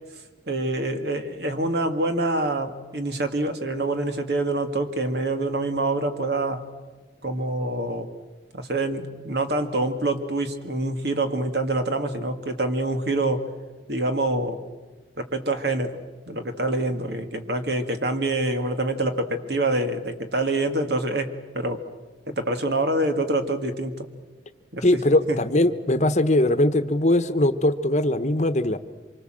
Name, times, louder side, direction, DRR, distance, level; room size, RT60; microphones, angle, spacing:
voice 1, 0.5-6.6 7.2-8.1 8.5-13.4 13.9-14.6 15.2-16.0 16.3-21.8 22.3-24.1 24.7-25.0 25.3-25.4, right 2 dB, 60° right, 7 dB, 2.0 m, -26 dB
voice 2, 24.8-28.8, left 1 dB, 40° left, 11 dB, 1.1 m, -21 dB
26.5 x 24.5 x 7.7 m, 1.3 s
head